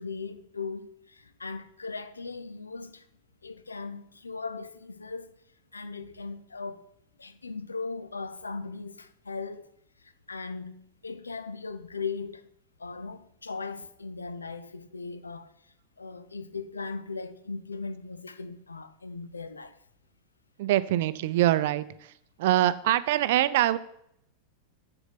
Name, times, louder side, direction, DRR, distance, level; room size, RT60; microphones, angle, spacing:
voice 1, 0.0-3.1 3.4-5.4 5.7-6.8 7.2-9.7 10.0-12.5 12.8-19.8, left 4 dB, 75° left, 0.7 m, -38 dB
voice 2, 20.6-22.1 22.4-23.8, right 14 dB, 55° right, 0.5 m, -24 dB
8.0 x 7.1 x 5.9 m
figure-of-eight pair, 90°, 0 cm